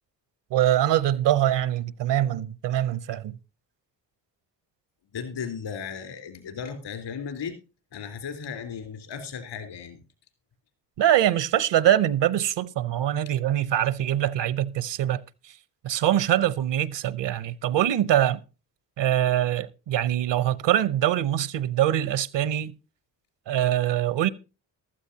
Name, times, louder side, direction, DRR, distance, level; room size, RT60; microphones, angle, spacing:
voice 1, 0.5-3.4 11.0-15.2 15.8-18.4 19.0-22.7 23.5-24.3, right 12 dB, 65° right, 0.8 m, -23 dB
voice 2, 5.1-7.6 7.9-10.0 13.3-13.4, left 6 dB, 70° left, 3.7 m, -36 dB
15.0 x 12.5 x 2.8 m
supercardioid pair, 55°, 45 cm